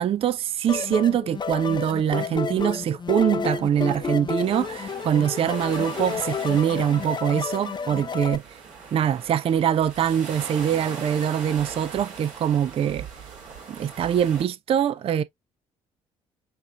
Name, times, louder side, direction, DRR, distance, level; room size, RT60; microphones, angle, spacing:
voice 1, 0.0-8.6 8.9-13.1 13.7-15.2, right 9 dB, 40° right, 0.4 m, -23 dB
sound 1, 0.7-8.4, left 5 dB, 30° left, 0.6 m, -31 dB
sound 2, 4.4-14.4, right 5 dB, 60° right, 2.1 m, -40 dB
6.6 x 2.5 x 2.3 m
hypercardioid pair, 50°, 16 cm